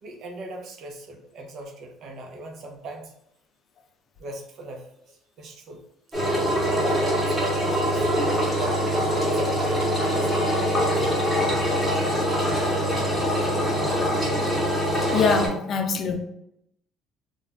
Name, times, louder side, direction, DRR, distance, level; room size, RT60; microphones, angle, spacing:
voice 1, 0.0-3.1 4.2-5.8 6.6-9.8 10.1-11.1, right 2 dB, 60° right, 3 dB, 0.6 m, -38 dB
Engine, 6.1-15.5, equal, 10° right, 1.1 m, -23 dB
voice 2, 12.5-12.8 14.1-14.3 15.1-16.2, left 4 dB, 50° left, 4 dB, 0.5 m, -25 dB
2.4 x 2.2 x 3.2 m, 0.78 s
cardioid pair, 105°, 0 cm